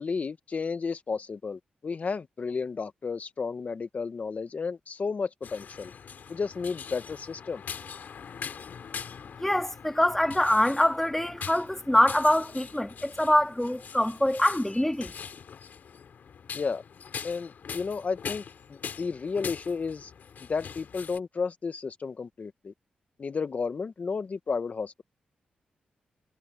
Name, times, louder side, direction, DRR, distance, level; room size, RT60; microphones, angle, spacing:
voice 1, 0.0-5.9 6.3-7.6 16.5-16.8 17.2-18.4 18.7-20.1 20.5-22.7 23.2-25.0, left 5 dB, 50° left, 1.1 m, -32 dB
sound 1, 5.4-21.2, left 7 dB, 70° left, 2.7 m, -42 dB
voice 2, 9.4-15.1, left 1 dB, 10° left, 2.3 m, -24 dB
supercardioid pair, 50°, 3 cm